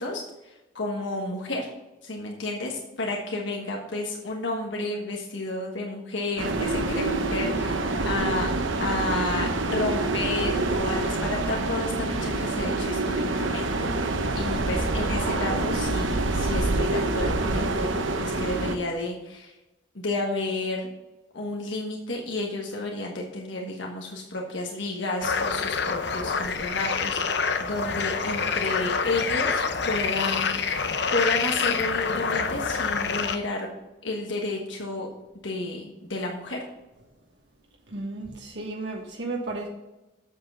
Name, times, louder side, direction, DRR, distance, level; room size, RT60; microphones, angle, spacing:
voice 1, 0.0-1.7 2.0-8.5 8.8-13.7 14.3-19.5 19.9-20.9 21.3-30.6 31.1-33.7 34.0-35.1 35.4-36.6, left 2 dB, 75° left, 0 dB, 1.3 m, -31 dB
sound 1, 6.4-18.8, right 2 dB, 85° right, 1.0 m, -26 dB
sound 2, 25.2-33.4, left 5 dB, 60° left, 0.7 m, -27 dB
voice 2, 37.9-39.7, right 2 dB, 65° right, 0 dB, 1.3 m, -33 dB
8.0 x 7.0 x 5.6 m, 1.0 s
head